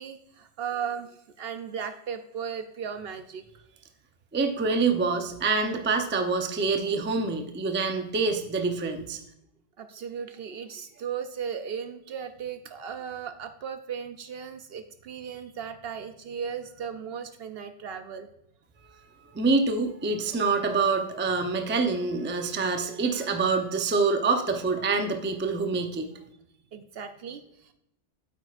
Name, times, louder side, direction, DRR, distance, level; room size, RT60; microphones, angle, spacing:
voice 1, 0.0-3.4 9.8-18.3 23.1-23.3 26.7-27.7, right 7 dB, 65° right, 9 dB, 0.7 m, -36 dB
voice 2, 4.3-9.2 19.3-26.1, right 4 dB, 15° right, 5 dB, 0.4 m, -26 dB
9.0 x 8.2 x 2.4 m, 0.79 s
omnidirectional pair, 1.2 m